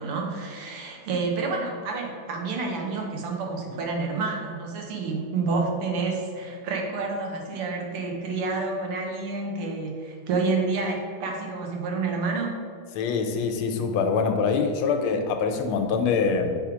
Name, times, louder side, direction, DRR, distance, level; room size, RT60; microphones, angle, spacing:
voice 1, 0.0-12.5, right 3 dB, 90° right, 1 dB, 1.9 m, -29 dB
voice 2, 12.9-16.6, left 5 dB, 80° left, 5 dB, 1.4 m, -24 dB
6.4 x 3.5 x 4.9 m, 2.2 s
omnidirectional pair, 2.4 m